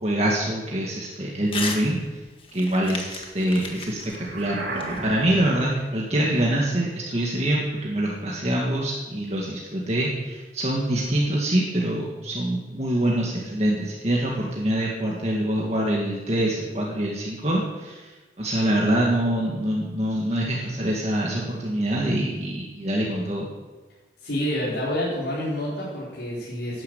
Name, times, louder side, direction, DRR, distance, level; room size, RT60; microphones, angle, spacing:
voice 1, 0.0-2.2 2.5-18.0 18.4-23.5, right 1 dB, 35° right, -3 dB, 2.0 m, -25 dB
Crumpling crinkling / Tearing, 1.5-1.8 2.2-5.5, left 4 dB, 30° left, 1.7 m, -35 dB
sound 1, 4.1-5.7, right 2 dB, 80° right, 2.8 m, -33 dB
voice 2, 24.2-26.8, left 1 dB, 80° left, -8 dB, 4.4 m, -28 dB
12.0 x 10.5 x 8.1 m, 1.2 s
head